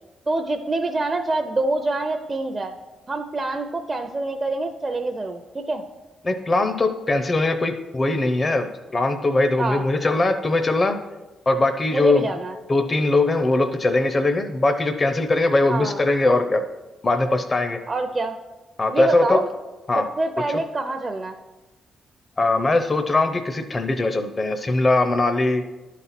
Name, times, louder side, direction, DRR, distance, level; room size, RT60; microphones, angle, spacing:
voice 1, 0.3-2.7 3.1-5.8 9.6-9.8 11.9-12.5 15.7-16.0 17.9-18.3 18.9-19.5 20.0-21.3, right 2 dB, 30° right, 4 dB, 0.6 m, -26 dB
voice 2, 6.2-11.0 11.5-12.2 12.7-16.6 17.0-17.8 18.8-19.4 19.9-20.1 22.4-25.6, left 2 dB, 35° left, 8 dB, 0.7 m, -21 dB
10.5 x 4.1 x 5.9 m, 1.1 s
supercardioid pair, 65°, 0 cm